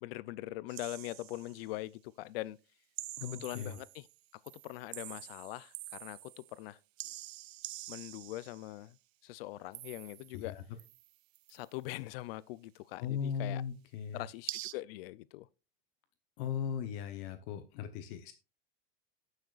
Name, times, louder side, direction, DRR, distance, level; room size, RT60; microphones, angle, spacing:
voice 1, 0.0-2.6 3.2-4.1 4.4-6.8 7.9-9.0 9.2-10.6 11.5-13.6 14.1-15.5, left 17 dB, 70° left, 0.5 m, -42 dB
sound 1, 0.7-1.7 3.0-4.2 4.5-6.6 7.0-8.7 9.7-10.5 10.8-11.6 14.5-14.7, right 17 dB, 85° right, 0.5 m, -46 dB
voice 2, 3.2-3.8 10.3-10.6 13.0-14.2 16.4-18.3, left 7 dB, 50° left, 0.9 m, -38 dB
18.5 x 6.4 x 2.4 m
supercardioid pair, 165°, 30 cm